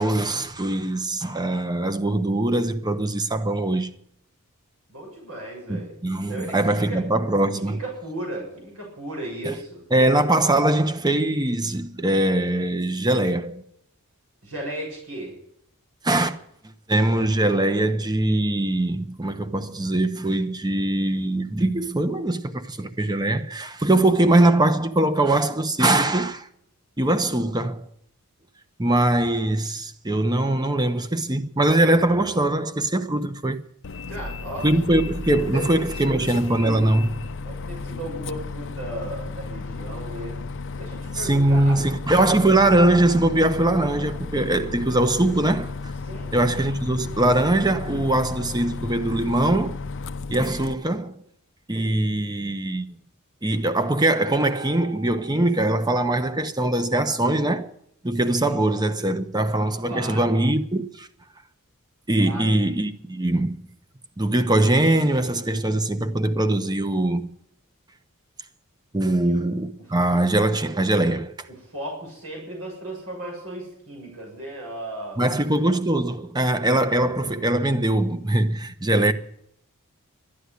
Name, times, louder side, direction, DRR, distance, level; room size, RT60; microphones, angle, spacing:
voice 1, 0.0-3.9 5.7-7.8 9.4-9.6 9.9-13.6 16.0-16.4 16.9-26.5 27.0-27.9 28.8-33.6 34.6-37.1 41.1-45.9 46.3-49.8 50.3-51.2 51.7-52.9 53.4-57.7 58.0-61.1 62.1-63.6 64.2-67.3 68.9-71.5 75.2-79.1, right 1 dB, 20° right, 0.9 m, -22 dB
voice 2, 4.9-6.0 6.3-7.0 7.5-9.8 14.4-15.3 34.1-34.7 35.5-37.1 37.4-40.4 40.8-41.8 46.0-46.4 58.4-58.6 59.8-60.4 62.2-62.6 69.2-69.4 69.8-70.2 71.5-75.2, right 1 dB, 75° right, 7.0 m, -35 dB
Bus, 33.8-50.7, left 3 dB, 60° left, 0.7 m, -34 dB
13.0 x 9.9 x 9.7 m
head